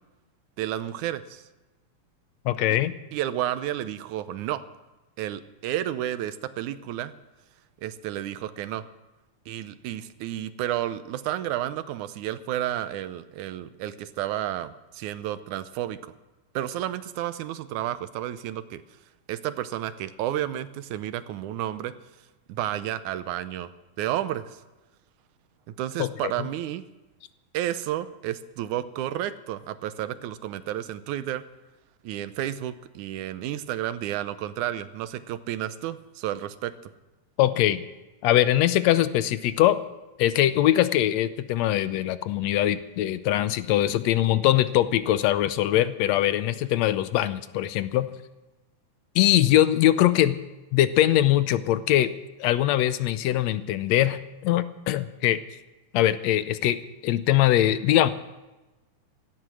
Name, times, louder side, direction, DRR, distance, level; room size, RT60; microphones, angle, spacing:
voice 1, 0.6-1.4 3.1-4.6 5.2-7.1 7.8-8.8 9.5-16.1 16.6-18.8 19.3-21.9 22.5-23.7 24.0-24.6 25.7-26.9 27.5-31.4 32.0-36.9, right 12 dB, 90° right, 13 dB, 2.2 m, -31 dB
voice 2, 2.5-2.9 26.0-26.1 37.4-37.8 38.2-39.8 40.2-48.1 49.2-50.4 50.7-52.1 52.4-55.4 55.9-56.8 57.0-58.1, left 13 dB, 75° left, 14 dB, 1.8 m, -22 dB
17.5 x 13.0 x 6.2 m, 1.1 s
omnidirectional pair, 3.4 m